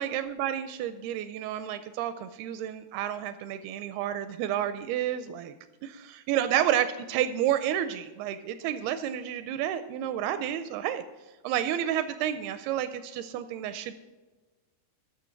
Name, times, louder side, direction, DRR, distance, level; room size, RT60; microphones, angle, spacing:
voice 1, 0.0-5.5 5.8-11.0 11.4-13.9, right 11 dB, 80° right, 11 dB, 2.3 m, -30 dB
13.0 x 6.6 x 5.7 m, 1.2 s
omnidirectional pair, 4.8 m